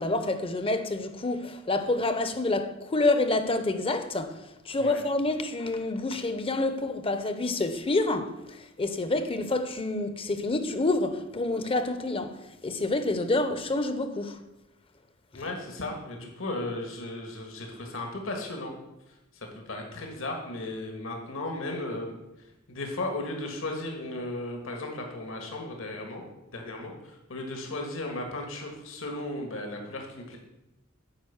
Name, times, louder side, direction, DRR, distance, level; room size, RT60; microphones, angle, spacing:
voice 1, 0.0-14.4, left 2 dB, 25° left, 0.7 m, -28 dB
voice 2, 15.3-18.8 19.3-22.1 22.7-26.2 26.5-30.4, left 2 dB, 70° left, 1.7 m, -35 dB
9.0 x 5.2 x 7.1 m
head